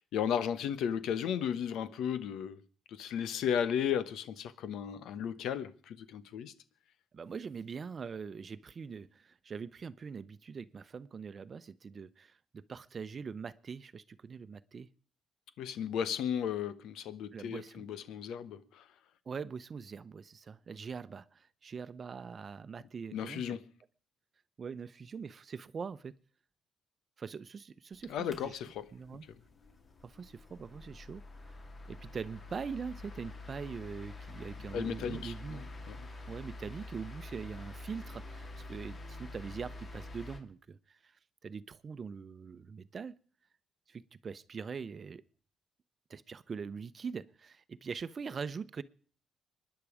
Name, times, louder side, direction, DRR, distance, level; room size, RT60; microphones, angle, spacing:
voice 1, 0.0-2.6 2.9-6.5 15.6-18.8 23.1-23.6 28.1-28.9 34.7-36.1, left 8 dB, 80° left, 1.0 m, -35 dB
voice 2, 7.1-14.9 17.3-17.8 19.3-23.6 24.6-26.1 27.2-28.6 28.9-29.3 30.0-31.6 31.9-35.7 36.3-41.1 41.4-43.1 43.9-45.2 46.1-48.8, right 5 dB, 45° right, 0.8 m, -43 dB
sound 1, 27.9-40.4, left 2 dB, 40° left, 2.5 m, -47 dB
24.0 x 10.5 x 5.0 m
cardioid pair, 90°, 0 cm